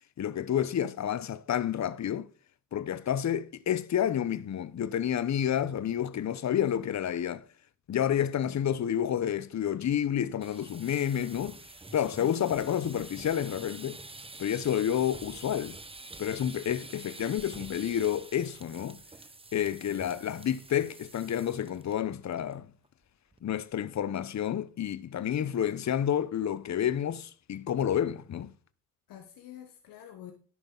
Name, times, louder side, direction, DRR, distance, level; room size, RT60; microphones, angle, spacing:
voice 1, 0.2-2.3 2.7-7.4 7.9-11.6 11.9-14.0 14.4-15.8 16.2-19.0 19.5-22.7 23.4-28.5, left 9 dB, 55° left, 0.9 m, -29 dB
sound 1, 10.3-21.9 22.2-22.5 22.8-22.9 23.3-23.7, right 3 dB, 15° right, 1.1 m, -47 dB
voice 2, 12.2-12.5 19.8-20.3 29.1-30.3, left 11 dB, 90° left, 1.3 m, -47 dB
11.0 x 7.8 x 4.0 m
supercardioid pair, 55°, 33 cm